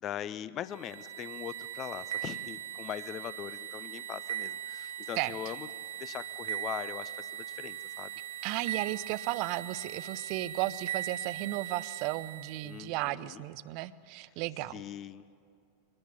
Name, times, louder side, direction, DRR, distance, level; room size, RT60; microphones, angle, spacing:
voice 1, 0.0-5.7 6.0-8.1 12.6-13.4 14.7-15.3, left 10 dB, 30° left, 16 dB, 0.8 m, -41 dB
sound 1, 0.7-12.8, right 10 dB, 60° right, 1.1 m, -40 dB
voice 2, 8.4-14.8, right 17 dB, 45° right, 17 dB, 0.7 m, -34 dB
24.5 x 20.0 x 7.4 m, 2.4 s
figure-of-eight pair, 90°, 0 cm